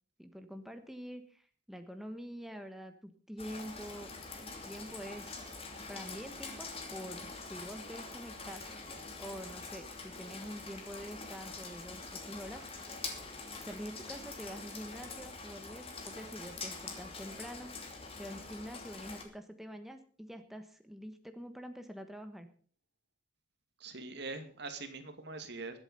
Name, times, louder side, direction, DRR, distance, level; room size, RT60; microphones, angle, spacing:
voice 1, 0.2-4.1 4.4-5.6 5.9-12.7 13.6-17.9 18.2-22.5, equal, ahead, 6 dB, 1.3 m, -46 dB
Rain, 3.4-19.2, left 3 dB, 30° left, 2.8 m, -45 dB
voice 2, 23.8-25.8, right 3 dB, 65° right, 7 dB, 2.3 m, -43 dB
21.5 x 8.1 x 5.4 m, 0.43 s
head